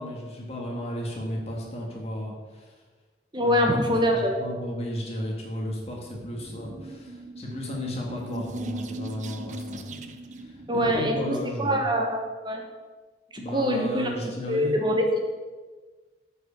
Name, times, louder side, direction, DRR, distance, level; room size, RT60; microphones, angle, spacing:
voice 1, 0.0-2.8 3.4-11.9 13.4-14.8, equal, 35° left, -2 dB, 1.9 m, -34 dB
voice 2, 3.3-4.4 10.7-12.6 13.5-14.1 14.5-15.2, equal, 25° right, 2 dB, 1.2 m, -24 dB
sound 1, 6.2-11.5, right 2 dB, 45° right, 0.6 m, -39 dB
7.9 x 5.4 x 6.7 m, 1.4 s
head